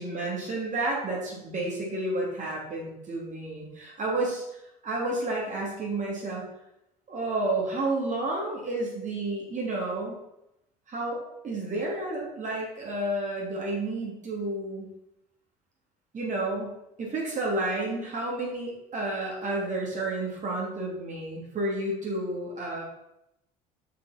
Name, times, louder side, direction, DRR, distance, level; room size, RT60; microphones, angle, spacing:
voice 1, 0.0-4.4 4.8-6.5 7.1-10.1 10.9-14.9 16.1-16.7 17.0-22.8, right 2 dB, 35° right, -3 dB, 3.2 m, -31 dB
9.2 x 5.7 x 4.4 m, 0.84 s
figure-of-eight pair, 55°, 21 cm